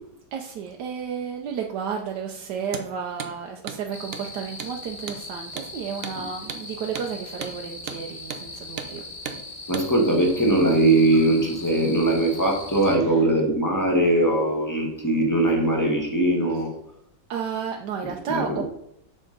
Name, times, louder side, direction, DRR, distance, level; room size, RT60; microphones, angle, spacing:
voice 1, 0.3-9.1 12.9-13.2 16.5-16.6 17.3-18.6, right 7 dB, 70° right, 2 dB, 1.2 m, -32 dB
Hammer, 2.6-2.9 3.2-3.3 3.7-3.8 4.1-4.3 4.6-4.7 5.1-5.2 5.6-5.7 6.0-6.2 6.5-6.6 7.0-7.1 7.4-7.6 7.9-8.0 8.3-8.5 8.8-8.9 9.3-9.4 9.7-9.9, right 6 dB, 90° right, 0.5 m, -35 dB
sound 1, 3.9-13.0, left 2 dB, 30° left, 1.0 m, -40 dB
voice 2, 9.7-16.7 18.3-18.6, right 1 dB, 10° left, 0 dB, 1.2 m, -21 dB
7.6 x 6.2 x 3.9 m, 0.76 s
omnidirectional pair, 2.0 m